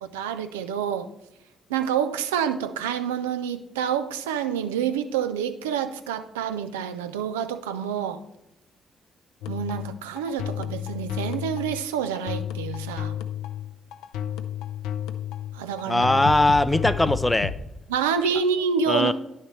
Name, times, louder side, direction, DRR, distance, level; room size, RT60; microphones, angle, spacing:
voice 1, 0.1-1.1 1.7-8.2 9.5-13.1 15.5-16.1 17.9-19.1, right 7 dB, 85° right, 10 dB, 0.4 m, -27 dB
sound 1, 9.4-17.6, left 9 dB, 75° left, 0.5 m, -31 dB
voice 2, 15.9-17.5 18.9-19.1, left 1 dB, 15° left, 13 dB, 0.4 m, -20 dB
10.0 x 6.4 x 3.2 m, 0.91 s
hypercardioid pair, 45°, 0 cm